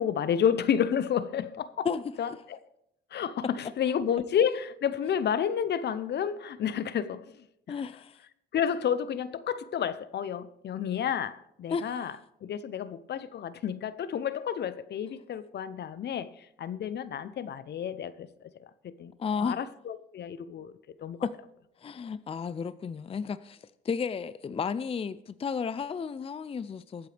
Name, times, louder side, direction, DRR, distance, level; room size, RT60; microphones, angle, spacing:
voice 1, 0.0-1.9 2.2-2.6 3.1-7.8 8.5-12.2 12.4-20.7 21.0-21.2, left 8 dB, 60° left, 0.8 m, -31 dB
voice 2, 7.7-8.2 11.7-12.0 19.2-19.6 21.2-21.3 21.8-27.1, left 6 dB, 30° left, 0.5 m, -33 dB
21.5 x 8.1 x 3.4 m
cardioid pair, 90°, 20 cm